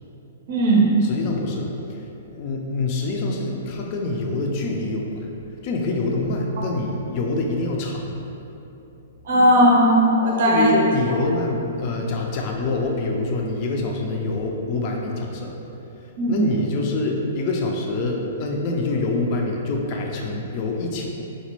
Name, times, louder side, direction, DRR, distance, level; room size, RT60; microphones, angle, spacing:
voice 1, 0.5-0.9 9.2-10.7 16.2-16.4, equal, 60° right, -3 dB, 0.5 m, -17 dB
voice 2, 1.0-5.3 5.6-8.2 10.4-15.6 16.0-21.1, left 2 dB, 35° left, 0 dB, 0.4 m, -26 dB
4.0 x 2.1 x 3.0 m, 2.9 s
hypercardioid pair, 155°, 0 cm